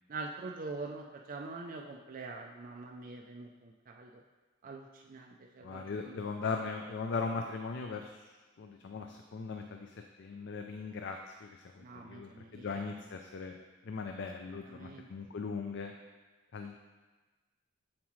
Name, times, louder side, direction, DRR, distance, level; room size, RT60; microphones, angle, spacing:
voice 1, 0.1-4.2 4.6-6.3 11.8-12.7 14.5-15.1, right 3 dB, 40° right, 1 dB, 0.4 m, -44 dB
voice 2, 5.6-8.2 8.6-9.9 10.2-13.6 13.8-15.9 16.5-16.7, left 4 dB, 60° left, 4 dB, 0.4 m, -39 dB
7.3 x 7.2 x 3.1 m, 1.3 s
head